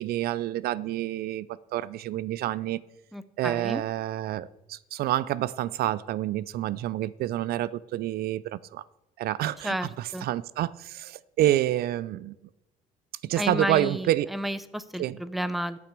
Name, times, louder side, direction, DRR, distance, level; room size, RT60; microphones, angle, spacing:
voice 1, 0.0-2.8 3.4-8.8 9.2-12.4 13.2-14.3 15.0-15.2, right 14 dB, 65° right, 20 dB, 0.4 m, -28 dB
voice 2, 3.1-3.8 9.6-10.3 13.4-15.8, equal, ahead, 14 dB, 0.6 m, -32 dB
11.5 x 6.1 x 7.4 m, 0.94 s
cardioid pair, 110°, 17 cm